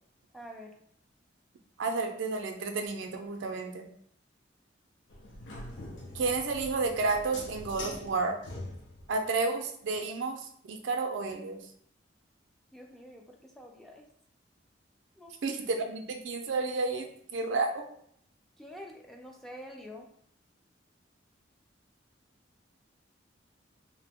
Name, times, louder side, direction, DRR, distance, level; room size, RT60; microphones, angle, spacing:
voice 1, 0.3-0.7 12.7-14.0 15.2-15.3 18.6-20.1, equal, ahead, 0 dB, 0.3 m, -47 dB
voice 2, 1.8-3.9 6.1-8.4 9.1-11.6 15.4-17.8, right 3 dB, 80° right, 5 dB, 0.4 m, -31 dB
sound 1, 5.1-9.2, left 1 dB, 75° left, 0.5 m, -43 dB
2.7 x 2.0 x 3.5 m, 0.66 s
head